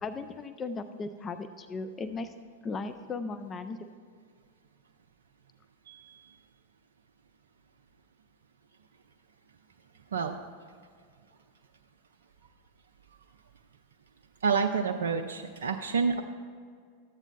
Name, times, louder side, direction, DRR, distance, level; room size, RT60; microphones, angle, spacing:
voice 1, 0.0-2.3 2.6-3.8, left 4 dB, 20° left, 10 dB, 0.4 m, -36 dB
voice 2, 5.9-6.3 10.1-10.4 14.4-16.2, right 5 dB, 65° right, 4 dB, 0.4 m, -29 dB
13.0 x 8.0 x 2.3 m, 2.1 s
figure-of-eight pair, 90°, 0 cm